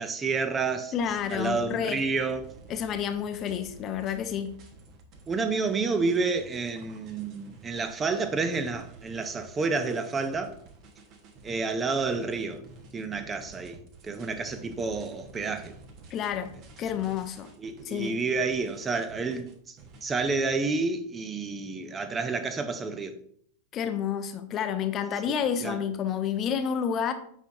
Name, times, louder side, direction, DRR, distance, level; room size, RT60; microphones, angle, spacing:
voice 1, 0.0-0.9 1.3-2.5 5.3-10.6 11.4-12.6 12.9-13.8 14.0-15.7 17.6-19.8 20.0-23.1 25.6-25.8, right 4 dB, 20° right, 0.6 m, -29 dB
voice 2, 0.9-2.0 2.7-4.5 16.1-16.5 16.8-17.5 17.8-18.2 23.7-27.1, left 8 dB, 30° left, 0.7 m, -29 dB
sound 1, 1.0-20.3, right 3 dB, 40° right, 1.2 m, -51 dB
8.1 x 5.7 x 2.7 m
figure-of-eight pair, 90°, 0 cm